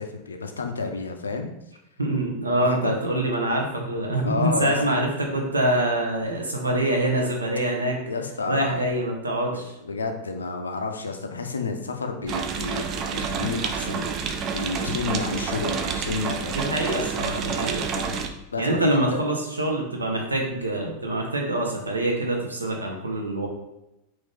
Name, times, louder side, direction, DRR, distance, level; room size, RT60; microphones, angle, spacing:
voice 1, 0.0-1.5 2.6-2.9 4.2-4.7 8.1-8.9 9.5-9.6 9.8-14.1 14.5-16.7 18.5-19.2, left 4 dB, 75° left, 5 dB, 0.4 m, -30 dB
voice 2, 2.0-8.0 8.5-9.7 16.5-18.2 18.6-23.5, right 1 dB, 80° right, 1 dB, 0.7 m, -25 dB
sound 1, 12.3-18.3, right 6 dB, 35° right, 0.3 m, -29 dB
3.6 x 2.6 x 3.6 m, 0.91 s
figure-of-eight pair, 90°, 0 cm